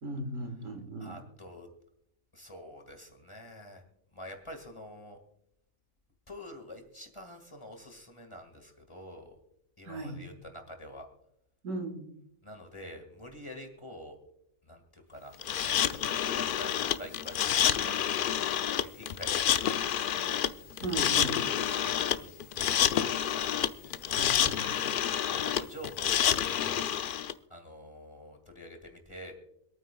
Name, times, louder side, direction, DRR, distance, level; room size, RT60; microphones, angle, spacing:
voice 1, 0.0-1.1 9.9-10.3 11.6-12.1 20.8-21.4 24.1-24.9, right 2 dB, 70° right, 4 dB, 2.1 m, -37 dB
voice 2, 1.0-1.7 2.3-3.8 4.1-5.2 6.3-9.4 9.8-11.1 12.4-14.2 14.6-18.3 18.8-20.2 21.7-22.3 22.7-23.6 23.8-24.0 25.3-26.8 27.5-29.3, equal, 20° left, 4 dB, 1.8 m, -47 dB
sound 1, 15.4-27.3, left 9 dB, 75° left, 0.4 m, -28 dB
26.0 x 9.1 x 2.3 m, 0.79 s
omnidirectional pair, 1.4 m